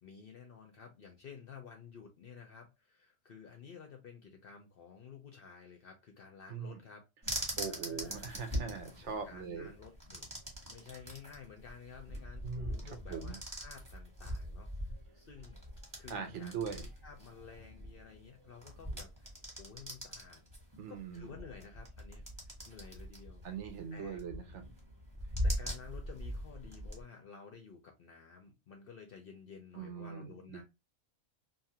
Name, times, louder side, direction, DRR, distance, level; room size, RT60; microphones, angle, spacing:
voice 1, 0.0-8.3 8.9-10.3 10.7-14.7 15.1-15.6 16.0-19.3 19.6-20.4 20.9-23.4 23.9-24.2 25.4-30.6, left 6 dB, 60° left, 3 dB, 0.6 m, -53 dB
voice 2, 6.5-6.8 7.6-9.7 12.4-13.4 16.1-16.8 20.8-21.3 23.4-24.6 29.7-30.6, right 6 dB, 65° right, 6 dB, 0.9 m, -41 dB
sound 1, 7.2-27.0, equal, 15° right, 1.0 m, -42 dB
2.7 x 2.4 x 2.7 m, 0.23 s
omnidirectional pair, 1.4 m